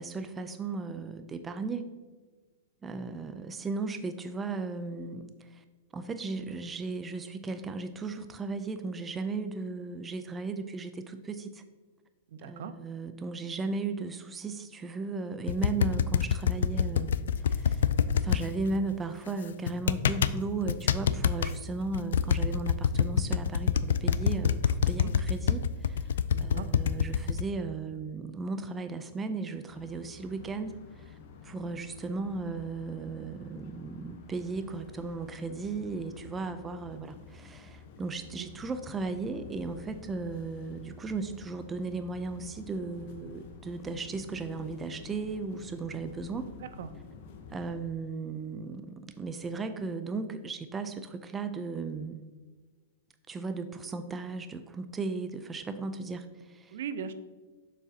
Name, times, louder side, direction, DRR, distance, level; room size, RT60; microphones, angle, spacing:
voice 1, 0.0-1.9 2.8-5.6 5.9-11.6 12.4-17.8 18.1-46.5 47.5-52.2 53.3-56.8, right 3 dB, 15° right, 9 dB, 0.4 m, -36 dB
voice 2, 12.3-12.7 24.9-25.1 26.3-26.7 37.0-37.1 38.4-38.5 43.2-43.3 46.6-46.9 56.7-57.1, right 7 dB, 70° right, 12 dB, 0.5 m, -39 dB
sound 1, 15.5-18.4 19.7-20.4 20.7-21.5 21.9-27.4, left 8 dB, 80° left, 0.3 m, -26 dB
sound 2, 29.7-47.8, left 5 dB, 55° left, 0.9 m, -50 dB
7.2 x 6.1 x 2.7 m, 1.4 s
hypercardioid pair, 145°, 0 cm